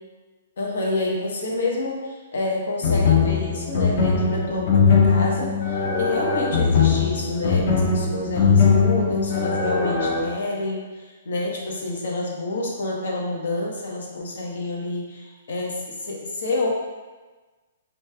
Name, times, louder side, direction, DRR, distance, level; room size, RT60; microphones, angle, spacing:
voice 1, 0.6-16.7, left 2 dB, 75° left, -1 dB, 0.9 m, -28 dB
sound 1, 2.8-10.2, left 5 dB, 45° left, 0.7 m, -20 dB
3.3 x 3.2 x 3.3 m, 1.3 s
hypercardioid pair, 145°, 0 cm